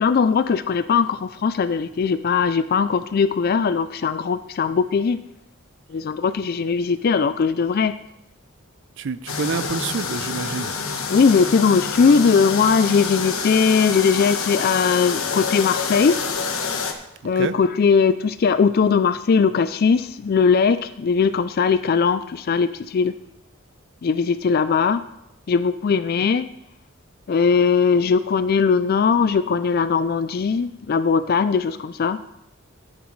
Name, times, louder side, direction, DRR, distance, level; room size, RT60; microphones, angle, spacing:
voice 1, 0.0-5.2 5.9-7.9 11.1-16.2 17.2-23.1 24.0-25.0 25.5-26.5 27.3-32.2, left 5 dB, 45° left, 13 dB, 0.3 m, -19 dB
voice 2, 9.0-10.8 17.4-17.5, right 5 dB, 60° right, 15 dB, 0.5 m, -27 dB
sound 1, 9.3-16.9, left 5 dB, 80° left, 1.2 m, -27 dB
13.5 x 10.0 x 3.2 m, 0.84 s
head